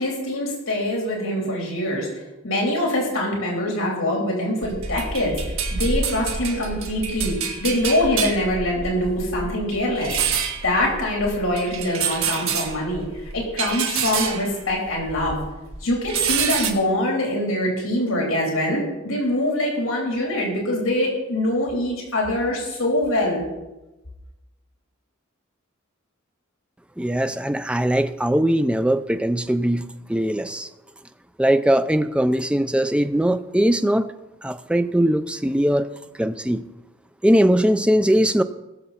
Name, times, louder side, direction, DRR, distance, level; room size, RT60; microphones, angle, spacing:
voice 1, 0.0-2.1 2.4-5.4 5.7-10.1 10.6-13.1 13.3-15.4 15.8-23.4, left 1 dB, 75° left, -2 dB, 3.6 m, -24 dB
sound 1, 4.6-15.5 15.7-16.7, right 6 dB, 85° right, 1.8 m, -27 dB
voice 2, 27.0-30.7 31.4-34.1 34.4-35.9 36.2-36.6 37.2-38.4, right 1 dB, 5° right, 10 dB, 0.4 m, -20 dB
20.0 x 6.8 x 4.2 m, 1.0 s
head